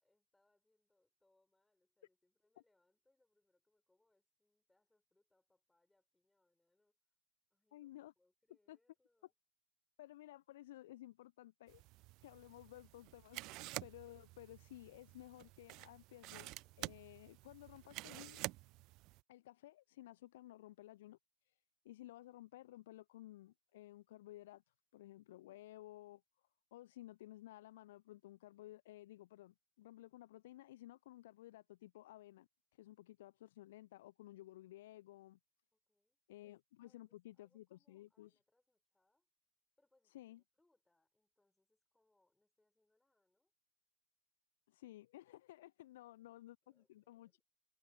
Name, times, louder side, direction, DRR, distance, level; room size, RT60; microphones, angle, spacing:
voice 1, 0.0-7.2 7.5-9.3 35.7-39.3 39.8-43.5 45.9-47.4, left 2 dB, 5° left, 8.0 m, -82 dB
voice 2, 7.7-8.1 8.7-8.8 10.0-11.8 12.2-18.4 19.3-21.2 21.4-21.6 21.8-24.6 24.9-26.2 26.7-35.4 36.3-38.4 40.1-40.4 44.7-47.4, left 15 dB, 55° left, 0.9 m, -56 dB
sound 1, 11.7-19.2, right 21 dB, 40° right, 0.5 m, -50 dB
figure-of-eight pair, 90°, 0 cm